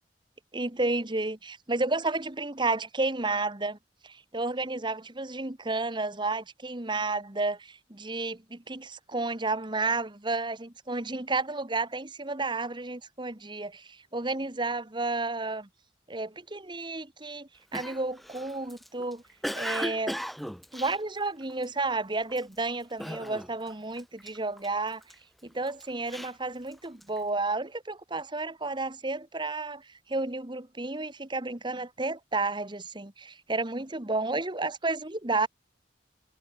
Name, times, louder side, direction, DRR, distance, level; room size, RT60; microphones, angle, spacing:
voice 1, 0.5-3.8 4.0-15.7 16.1-19.2 19.5-20.2 20.7-25.0 25.4-35.5, right 3 dB, 25° right, 1.6 m, -31 dB
Cough, 17.7-21.8 22.3-22.6 23.0-23.7 24.0-25.1 25.7-27.2, equal, ahead, 2.0 m, -37 dB
head